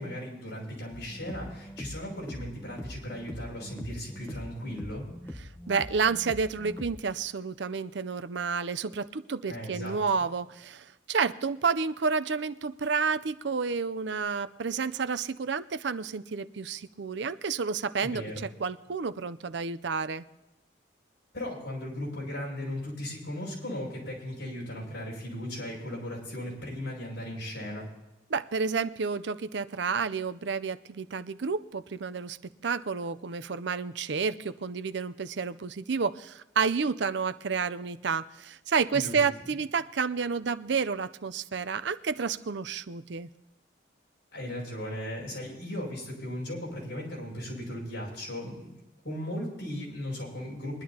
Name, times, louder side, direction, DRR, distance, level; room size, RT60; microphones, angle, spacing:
voice 1, 0.0-5.1 9.5-10.0 18.0-18.4 21.3-27.9 38.9-39.2 44.3-48.7 49.0-50.8, left 1 dB, 70° left, -3 dB, 6.3 m, -37 dB
sound 1, 0.9-7.0, equal, 10° left, 1.0 m, -43 dB
voice 2, 5.7-20.2 28.3-32.4 32.6-43.3, right 5 dB, 70° right, 13 dB, 0.6 m, -30 dB
22.5 x 11.5 x 2.9 m, 0.95 s
head